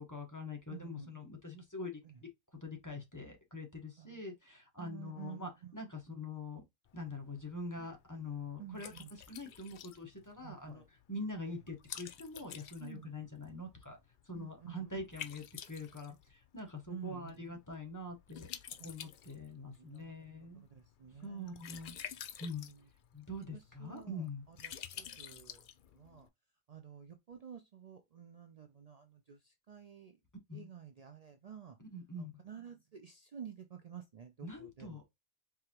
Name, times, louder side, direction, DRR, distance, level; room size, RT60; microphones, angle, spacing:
voice 1, 0.0-6.6 6.9-8.9 9.3-14.0 14.2-18.5 18.8-20.6 21.2-21.9 22.4-22.7 23.1-24.4 30.5-30.7 31.9-32.4 34.4-35.1, left 2 dB, 15° left, 1.1 m, -44 dB
voice 2, 0.7-1.1 2.0-2.1 4.0-4.2 4.8-5.8 8.6-9.1 10.4-10.9 11.5-11.6 12.8-13.2 14.3-14.9 16.9-17.4 19.9-20.1 20.7-21.7 22.7-22.8 23.5-25.6 25.9-26.3 26.7-30.2 30.5-31.8 32.2-35.0, right 9 dB, 70° right, 0.3 m, -51 dB
Liquid, 6.9-26.3, left 9 dB, 70° left, 0.4 m, -51 dB
4.8 x 3.4 x 2.9 m
omnidirectional pair, 1.4 m